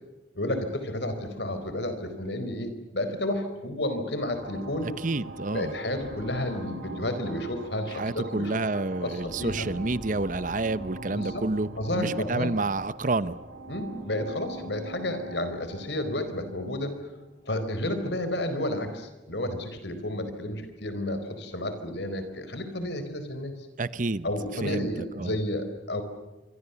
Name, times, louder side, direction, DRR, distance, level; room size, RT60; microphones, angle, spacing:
voice 1, 0.3-4.9 5.5-9.7 11.1-11.4 11.8-12.5 13.7-17.0 17.5-23.5 24.2-26.0, left 1 dB, 70° left, 9 dB, 4.4 m, -31 dB
sound 1, 4.2-18.3, right 2 dB, 80° right, 5.8 m, -43 dB
voice 2, 4.8-5.7 7.9-13.4 23.8-24.3 24.6-24.9 25.1-25.3, right 2 dB, 45° right, 16 dB, 0.8 m, -29 dB
27.0 x 24.5 x 7.0 m, 1.1 s
head